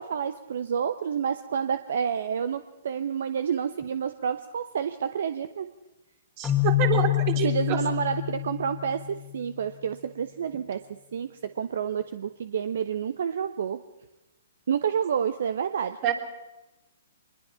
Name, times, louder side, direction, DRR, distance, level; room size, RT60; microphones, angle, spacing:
voice 1, 0.0-5.7 7.4-13.8 14.7-16.0, right 7 dB, 65° right, 12 dB, 0.8 m, -29 dB
Keyboard (musical), 6.4-9.3, left 16 dB, 15° left, 2.1 m, -26 dB
voice 2, 6.4-7.1 7.4-7.8 16.0-16.1, right 10 dB, 35° right, 5 dB, 3.2 m, -27 dB
24.0 x 21.0 x 5.7 m, 1.0 s
figure-of-eight pair, 120°, 0 cm